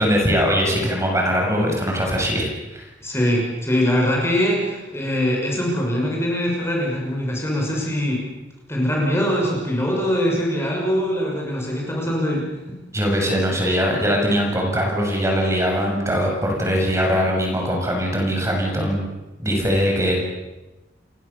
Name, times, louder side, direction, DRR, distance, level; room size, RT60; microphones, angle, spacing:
voice 1, 0.0-2.8 12.9-19.0 19.4-20.2, equal, 15° right, 0 dB, 7.1 m, -21 dB
voice 2, 3.0-8.2 8.7-12.7, equal, 15° left, -2 dB, 6.3 m, -22 dB
30.0 x 22.5 x 7.0 m, 1.0 s
head